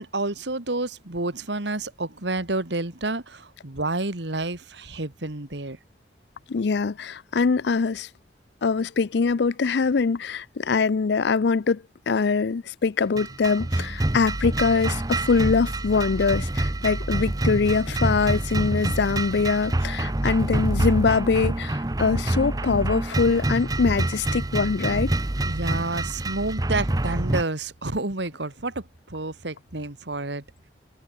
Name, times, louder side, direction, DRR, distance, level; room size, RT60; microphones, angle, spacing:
voice 1, 0.0-5.8 25.4-30.4, right 2 dB, 75° right, 2.2 m, -29 dB
voice 2, 6.5-8.1 8.6-25.1, left 4 dB, 70° left, 0.5 m, -23 dB
sound 1, 13.1-27.4, right 1 dB, 20° right, 0.7 m, -26 dB
head